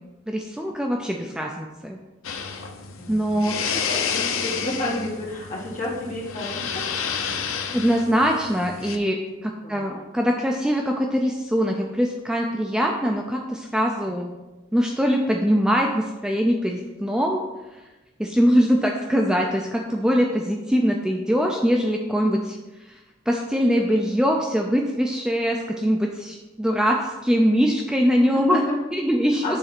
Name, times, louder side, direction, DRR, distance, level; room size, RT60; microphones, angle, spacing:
voice 1, 0.3-2.0 3.1-3.6 7.7-14.3 14.7-17.4 18.2-22.6 23.3-28.6 28.9-29.6, equal, 5° right, 1 dB, 0.4 m, -22 dB
sound 1, 2.2-9.0, left 6 dB, 80° left, 0.6 m, -30 dB
voice 2, 3.0-6.8 9.6-10.0 28.2-28.8 29.4-29.6, left 1 dB, 40° left, -5 dB, 2.1 m, -31 dB
6.4 x 3.9 x 5.9 m, 1.1 s
head